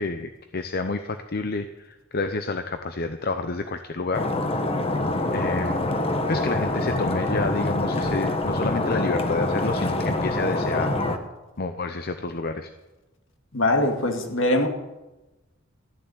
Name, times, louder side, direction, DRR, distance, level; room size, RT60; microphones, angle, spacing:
voice 1, 0.0-4.2 5.3-5.9 6.3-10.9 11.6-12.7, left 3 dB, 50° left, 8 dB, 0.7 m, -29 dB
Stream, 4.1-11.2, left 2 dB, 30° left, 1.2 m, -25 dB
voice 2, 13.5-14.7, left 1 dB, 65° left, 4 dB, 2.2 m, -22 dB
14.0 x 7.0 x 9.7 m, 1.1 s
head